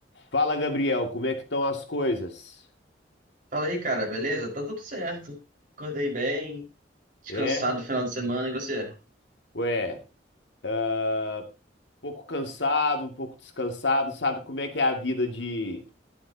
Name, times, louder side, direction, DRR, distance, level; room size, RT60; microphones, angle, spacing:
voice 1, 0.3-2.6 7.3-7.7 9.5-10.0 10.6-11.5 12.0-15.8, left 2 dB, 70° left, 4 dB, 2.5 m, -28 dB
voice 2, 3.5-5.3 5.8-6.6 7.3-8.9, right 1 dB, 50° right, 0 dB, 5.3 m, -29 dB
13.0 x 12.0 x 2.9 m, 0.29 s
head